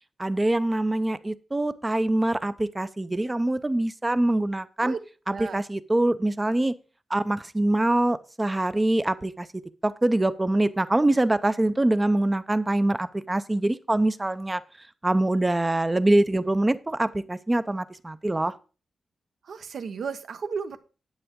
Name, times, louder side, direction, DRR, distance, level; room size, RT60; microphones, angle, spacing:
voice 1, 0.2-4.9 5.3-6.7 7.1-9.5 9.8-14.6 15.0-18.5, right 1 dB, 15° right, 14 dB, 0.5 m, -24 dB
voice 2, 5.3-5.6 19.4-20.8, right 5 dB, 70° right, 10 dB, 1.0 m, -33 dB
9.6 x 9.0 x 3.6 m, 0.34 s
wide cardioid pair, 135°, 0 cm